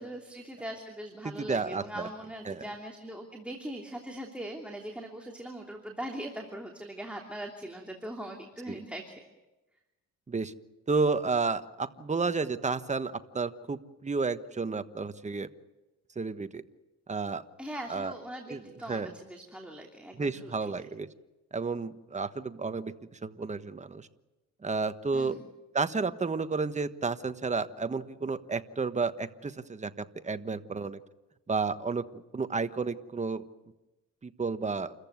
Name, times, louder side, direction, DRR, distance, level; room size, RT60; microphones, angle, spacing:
voice 1, 0.0-9.2 17.6-20.7 25.1-25.4, right 1 dB, 5° right, 1 dB, 3.0 m, -41 dB
voice 2, 1.4-2.1 2.5-2.6 8.7-8.8 10.3-10.5 10.9-15.5 16.1-16.6 17.1-17.4 17.9-18.1 18.5-18.6 18.9-19.1 20.2-21.1 21.5-22.9 23.2-24.1 24.6-25.4 25.7-31.0 31.5-33.5 34.2-34.9, right 4 dB, 25° right, 10 dB, 1.3 m, -31 dB
28.5 x 15.0 x 9.5 m, 1.0 s
cardioid pair, 90°, 30 cm